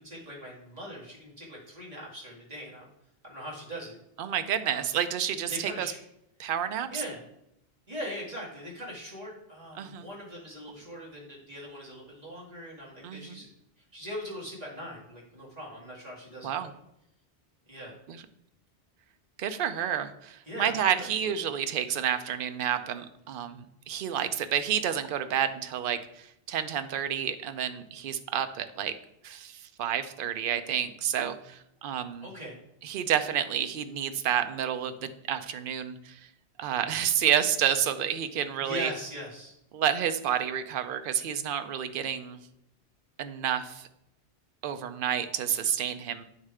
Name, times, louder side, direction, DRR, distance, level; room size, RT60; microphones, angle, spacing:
voice 1, 0.0-2.9 3.2-3.9 4.6-4.8 5.5-6.0 6.9-7.2 7.9-13.5 13.8-16.7 17.7-17.9 20.5-21.3 32.2-32.6 38.6-39.5, equal, 35° right, -5 dB, 2.3 m, -41 dB
voice 2, 4.2-5.9 6.4-7.0 9.7-10.1 13.0-13.4 16.4-16.7 18.1-18.2 19.4-28.9 29.2-32.3 32.8-36.2 36.6-38.9 39.7-42.4 43.2-43.9 44.6-46.2, right 9 dB, 60° right, 10 dB, 0.7 m, -30 dB
8.9 x 3.2 x 4.8 m, 0.80 s
omnidirectional pair, 1.1 m